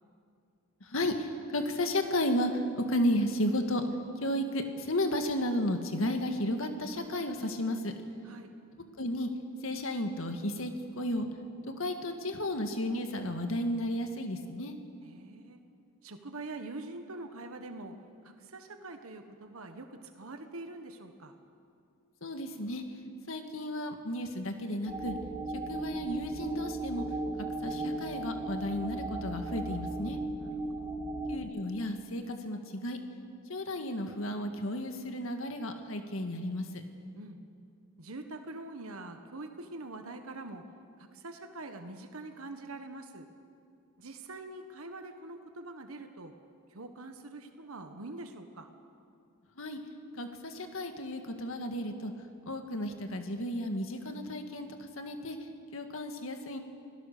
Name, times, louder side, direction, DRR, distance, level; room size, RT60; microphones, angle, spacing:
voice 1, 0.8-3.8 4.2-7.9 9.0-9.3 9.6-11.3 11.8-14.7 22.2-22.8 23.3-25.1 25.7-27.0 27.6-30.2 31.3-33.0 33.5-36.8 49.6-49.8 50.1-52.1 52.5-56.6, left 1 dB, 70° left, 6 dB, 1.8 m, -33 dB
voice 2, 15.0-15.6 16.0-17.9 18.2-21.3 30.4-30.5 30.8-31.0 37.1-37.4 38.0-40.6 41.1-43.2 44.0-46.3 46.7-48.7, right 2 dB, 85° right, 6 dB, 1.4 m, -44 dB
sound 1, 24.9-31.4, right 2 dB, 15° right, 3.6 m, -36 dB
26.0 x 17.5 x 6.7 m, 2.4 s
head